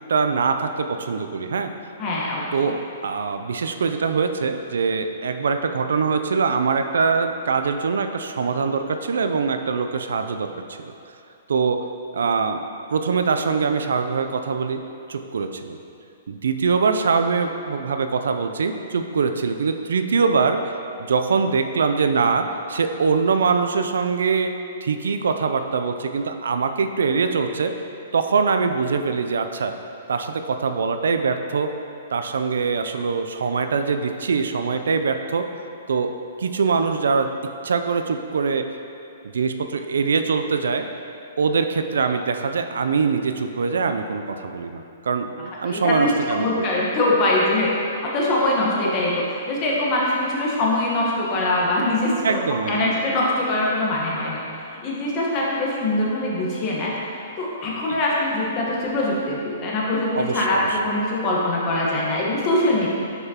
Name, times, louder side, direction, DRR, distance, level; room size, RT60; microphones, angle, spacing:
voice 1, 0.1-1.7 2.5-2.8 3.0-10.9 11.5-11.8 12.1-12.6 12.9-14.8 15.1-15.8 16.3-20.7 21.0-24.5 24.8-27.7 28.1-29.7 30.1-31.7 32.1-35.5 35.9-37.3 37.6-38.7 39.3-40.8 41.4-46.6 52.2-52.9 57.9-58.0 60.1-60.8, right 5 dB, 85° right, 7 dB, 0.3 m, -23 dB
voice 2, 2.0-2.4 45.6-54.4 54.8-56.9 57.4-62.9, left 1 dB, 30° left, -4 dB, 1.2 m, -23 dB
5.9 x 5.5 x 2.9 m, 2.7 s
hypercardioid pair, 145°, 0 cm